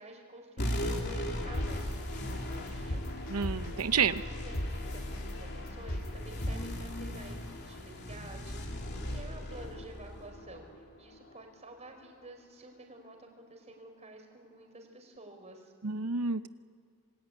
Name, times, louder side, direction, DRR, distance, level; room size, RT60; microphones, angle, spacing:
voice 1, 0.0-3.1 4.1-15.7, right 2 dB, 30° right, 3 dB, 4.6 m, -51 dB
sound 1, 0.6-11.4, left 1 dB, 50° left, 3.0 m, -38 dB
sound 2, 1.5-1.7 2.1-2.3 2.7-3.8 4.2-4.3 4.5-4.7 5.1-5.3 5.7-6.1 6.4-6.6, equal, 70° left, 2.2 m, -34 dB
voice 2, 3.3-4.2 15.8-16.5, right 6 dB, 85° right, 12 dB, 0.8 m, -29 dB
26.5 x 20.0 x 9.5 m, 2.4 s
head